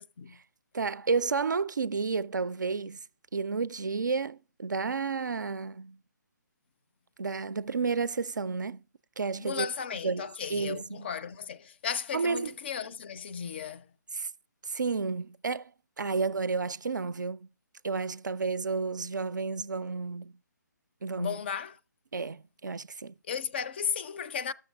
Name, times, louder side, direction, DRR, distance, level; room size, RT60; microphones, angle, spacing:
voice 1, 0.7-3.0 3.3-6.0 7.2-8.8 9.2-9.7 10.0-11.1 12.1-12.5 14.2-14.3 14.7-15.7 16.0-17.5 17.8-20.3 21.0-21.4 22.1-23.1, right 4 dB, 75° right, 0.4 m, -31 dB
voice 2, 9.4-13.9 21.2-21.8 23.3-24.5, left 7 dB, 35° left, 0.4 m, -35 dB
12.5 x 6.5 x 3.4 m
figure-of-eight pair, 140°, 10 cm